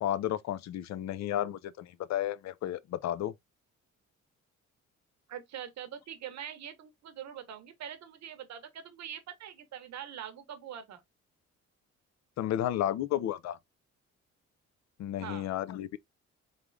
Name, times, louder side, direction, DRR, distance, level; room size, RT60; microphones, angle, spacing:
voice 1, 0.0-3.3 12.4-13.6 15.0-16.0, left 12 dB, 60° left, 0.5 m, -32 dB
voice 2, 5.3-11.0 15.2-15.5, right 9 dB, 65° right, 0.8 m, -43 dB
3.7 x 3.3 x 2.5 m
cardioid pair, 90°, 30 cm